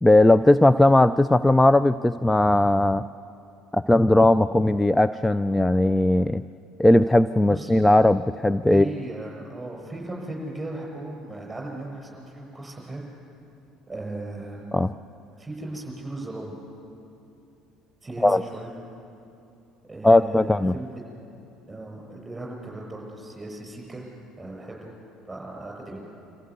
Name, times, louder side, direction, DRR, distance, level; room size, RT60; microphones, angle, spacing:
voice 1, 0.0-3.0 3.7-6.4 6.8-8.9 14.7-14.9 18.2-18.4 20.0-20.7, left 1 dB, 10° left, 13 dB, 0.4 m, -18 dB
voice 2, 8.7-13.0 13.9-14.7 15.4-16.5 18.0-18.7 19.8-21.0 21.7-24.1 24.4-24.9 25.3-26.0, right 2 dB, 15° right, -1 dB, 7.1 m, -37 dB
25.5 x 15.0 x 8.3 m, 2.7 s
figure-of-eight pair, 60°, 0 cm